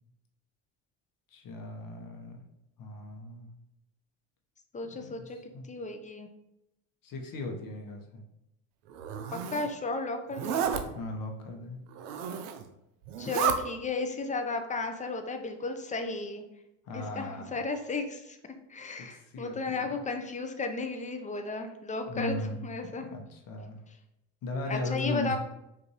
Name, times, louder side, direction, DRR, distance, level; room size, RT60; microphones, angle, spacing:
voice 1, 1.3-2.4 2.8-3.5 4.9-5.7 7.0-8.2 10.9-11.8 16.9-17.6 19.0-20.0 22.1-23.8 24.4-25.4, left 2 dB, 45° left, 2 dB, 0.8 m, -37 dB
voice 2, 4.7-5.4 5.7-6.3 9.3-10.6 13.2-16.4 16.9-18.4 18.7-23.2 24.7-25.4, left 3 dB, 20° left, 6 dB, 0.4 m, -34 dB
Zipper (clothing), 8.9-9.7 10.3-10.8 11.9-12.6 13.1-13.6, right 8 dB, 85° right, 0.5 m, -31 dB
5.1 x 2.6 x 2.9 m, 0.86 s
hypercardioid pair, 80°, 45 cm